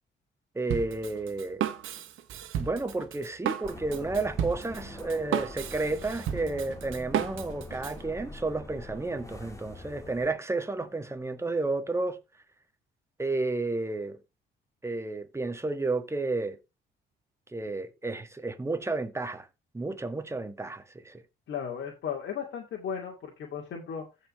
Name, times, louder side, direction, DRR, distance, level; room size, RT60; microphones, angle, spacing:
voice 1, 0.5-1.6 2.6-12.2 13.2-14.2 14.8-16.6 17.5-19.5 19.7-21.2, right 3 dB, 15° right, 1.6 m, -31 dB
Drum kit, 0.7-8.0, right 10 dB, 85° right, 1.6 m, -34 dB
sound 1, 3.6-10.3, left 2 dB, 15° left, 2.7 m, -44 dB
voice 2, 21.5-24.3, left 7 dB, 70° left, 2.5 m, -36 dB
15.0 x 5.5 x 3.2 m
cardioid pair, 90°, 20 cm